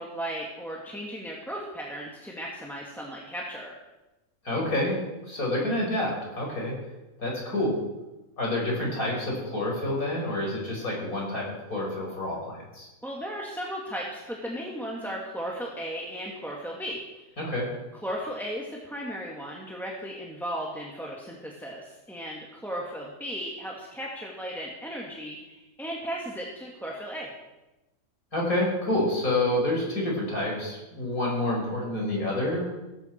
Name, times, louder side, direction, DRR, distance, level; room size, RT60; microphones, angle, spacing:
voice 1, 0.0-3.7 13.0-17.0 18.0-27.3, equal, ahead, -3 dB, 2.2 m, -36 dB
voice 2, 4.4-5.0 5.3-6.8 7.2-7.8 8.4-12.9 17.4-17.7 28.3-32.7, left 1 dB, 65° left, -2 dB, 5.6 m, -28 dB
17.0 x 15.5 x 4.7 m, 1.0 s
omnidirectional pair, 1.6 m